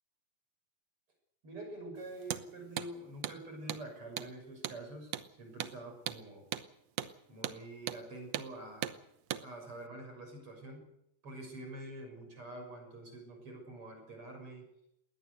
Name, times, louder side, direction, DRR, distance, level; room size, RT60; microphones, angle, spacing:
voice 1, 1.4-6.5 7.3-9.0 9.4-10.9 11.2-14.7, right 1 dB, 35° right, 4 dB, 7.1 m, -46 dB
Hammer, 2.2-2.5 2.8-2.9 3.2-3.4 3.7-3.8 4.2-4.3 4.6-4.8 5.1-5.3 5.6-5.8 6.1-6.2 6.5-6.7 7.0-7.1 7.4-7.6 7.9-8.0 8.3-8.5 8.8-9.0 9.3-9.5, right 11 dB, 85° right, 1.4 m, -37 dB
21.0 x 19.0 x 8.1 m, 0.79 s
omnidirectional pair, 4.5 m